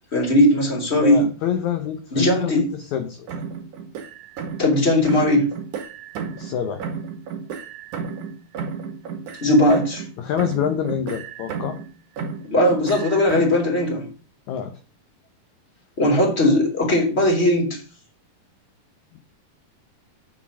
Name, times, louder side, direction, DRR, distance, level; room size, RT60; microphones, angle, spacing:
voice 1, 0.1-1.3 2.1-2.6 4.6-5.5 9.4-10.0 12.5-14.1 16.0-17.7, left 1 dB, 20° left, 0 dB, 3.3 m, -18 dB
voice 2, 1.0-3.3 6.3-6.8 10.2-11.8 14.5-14.7, left 9 dB, 70° left, 6 dB, 2.0 m, -26 dB
sound 1, 3.3-4.8 5.1-6.6 6.8-10.1 10.4-11.9 12.2-13.6, right 6 dB, 65° right, 2.8 m, -32 dB
8.4 x 6.3 x 6.1 m, 0.37 s
omnidirectional pair, 4.1 m